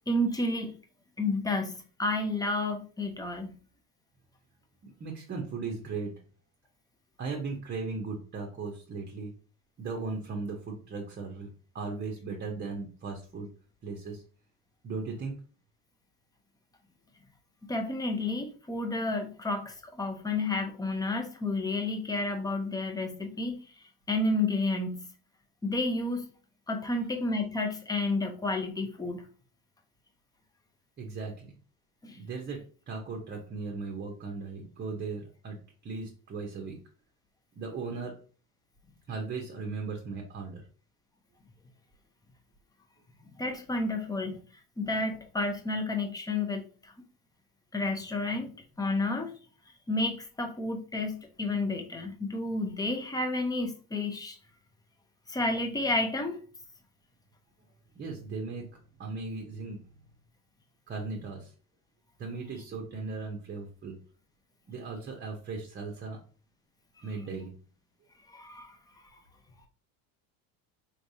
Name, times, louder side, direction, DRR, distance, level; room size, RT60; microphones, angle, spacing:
voice 1, 0.1-0.8 1.2-3.5 17.6-23.6 24.1-25.1 25.6-26.3 26.7-29.3 32.0-32.2 43.4-44.4 44.8-46.9 47.7-48.5 48.8-49.3 49.9-54.4 55.3-56.4 68.3-68.8, left 2 dB, 10° left, 4 dB, 0.6 m, -31 dB
voice 2, 4.8-6.1 7.2-9.3 9.8-11.5 11.7-13.5 13.8-14.2 14.8-15.3 31.0-31.5 32.1-35.6 35.8-36.8 37.6-38.1 39.1-40.6 57.9-59.8 60.9-61.5 62.2-64.0 64.7-66.2 67.0-67.5, right 4 dB, 25° right, 2 dB, 0.8 m, -37 dB
4.5 x 3.2 x 2.7 m, 0.40 s
cardioid pair, 130°, 41 cm